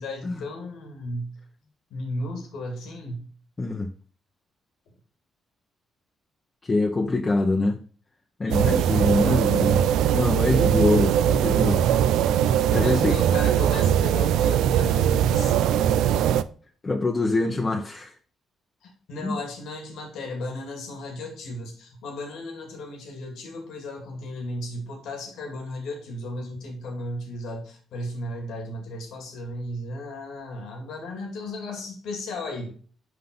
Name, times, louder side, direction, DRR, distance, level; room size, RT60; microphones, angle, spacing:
voice 1, 0.0-1.3 1.9-3.2 8.4-8.9 12.7-15.8 18.8-32.7, left 1 dB, 80° left, 2.2 m, -35 dB
voice 2, 3.6-3.9 6.6-7.8 8.4-9.8 10.1-11.8 12.3-12.4 12.7-13.2 16.8-18.1 19.2-19.4, left 2 dB, 25° left, 0.9 m, -24 dB
sound 1, 8.5-16.4, right 10 dB, 90° right, 0.4 m, -21 dB
5.8 x 5.4 x 3.8 m
cardioid pair, 90°, 0 cm